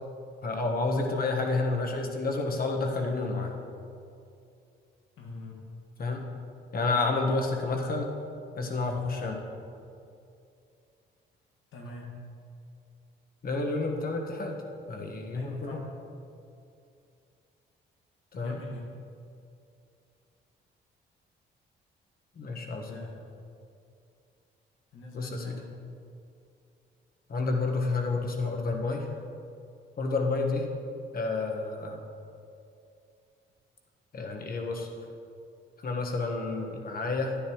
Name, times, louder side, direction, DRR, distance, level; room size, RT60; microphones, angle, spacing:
voice 1, 0.4-3.5 6.0-6.2 6.7-8.1 8.6-9.4 13.4-14.6 14.9-15.8 18.3-18.6 22.4-23.0 25.1-25.6 27.3-29.1 30.0-30.7 31.1-32.0 34.1-34.9 35.8-37.4, left 3 dB, 50° left, 2 dB, 1.5 m, -30 dB
voice 2, 5.2-5.6 7.2-7.4 11.7-12.1 15.3-15.8 18.3-18.9 22.9-23.2 24.9-25.7, left 1 dB, 80° left, -1 dB, 1.9 m, -43 dB
12.0 x 9.8 x 3.1 m, 2.5 s
cardioid pair, 90°, 20 cm